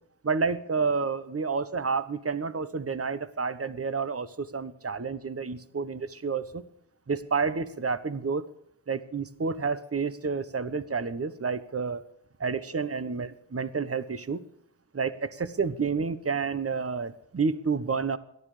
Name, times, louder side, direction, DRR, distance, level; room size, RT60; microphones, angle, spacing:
voice 1, 0.2-6.6 7.1-8.5 8.9-12.0 12.4-14.4 14.9-18.2, right 5 dB, 35° right, 13 dB, 1.2 m, -30 dB
18.0 x 12.0 x 5.1 m, 0.74 s
cardioid pair, 50°, 43 cm